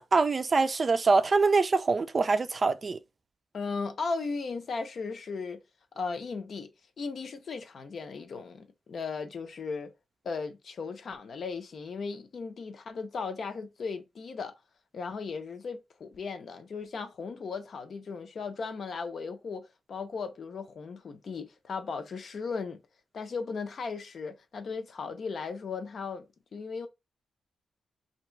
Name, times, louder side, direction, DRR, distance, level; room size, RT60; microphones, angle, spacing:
voice 1, 0.0-3.0, right 4 dB, 35° right, 0.4 m, -24 dB
voice 2, 3.5-5.6 5.9-6.7 7.0-9.9 10.2-14.5 14.9-22.8 23.1-26.9, left 4 dB, 55° left, 0.7 m, -36 dB
2.9 x 2.9 x 4.4 m
wide cardioid pair, 120°, 0 cm